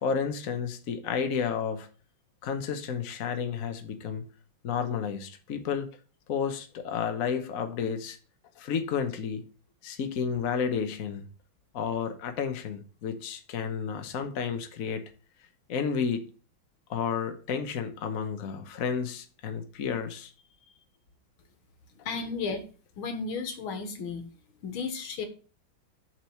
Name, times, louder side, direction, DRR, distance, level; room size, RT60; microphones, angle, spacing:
voice 1, 0.0-1.9 2.4-4.2 4.6-5.9 6.3-8.2 8.6-9.4 9.8-11.2 11.7-15.0 15.7-16.3 16.9-20.3, left 6 dB, 50° left, 7 dB, 1.2 m, -31 dB
voice 2, 22.1-22.6 23.0-24.3 24.6-25.3, left 4 dB, 80° left, 7 dB, 2.2 m, -33 dB
7.4 x 4.7 x 6.9 m, 0.38 s
omnidirectional pair, 2.2 m